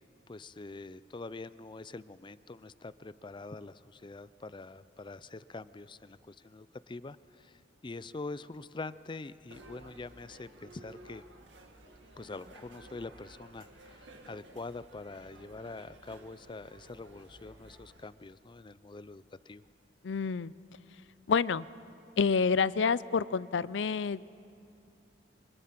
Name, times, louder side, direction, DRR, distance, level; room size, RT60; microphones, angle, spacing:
voice 1, 0.3-11.2 12.2-19.6, left 3 dB, 25° left, 16 dB, 0.5 m, -45 dB
sound 1, 9.5-18.1, right 1 dB, 85° right, 2.1 m, -54 dB
voice 2, 20.0-20.5 21.3-21.6 22.2-24.3, left 5 dB, 80° left, 19 dB, 0.5 m, -28 dB
28.0 x 25.0 x 5.9 m, 2.8 s
head